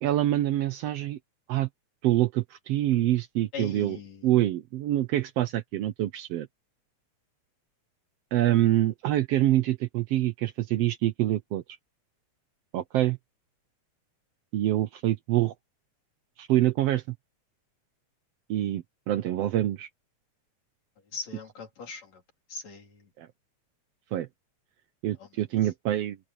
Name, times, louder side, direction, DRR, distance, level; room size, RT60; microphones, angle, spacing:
voice 1, 0.0-1.2 1.5-1.7 2.0-4.0 4.2-6.5 8.3-11.6 12.7-13.2 14.5-15.5 16.4-17.1 18.5-19.9 23.2-23.3 24.1-24.3 25.0-26.2, right 13 dB, 70° right, 1.6 m, -26 dB
voice 2, 3.5-4.3 21.1-22.2 22.5-23.1 25.2-25.3, left 4 dB, 65° left, 5.0 m, -40 dB
open air
omnidirectional pair, 3.3 m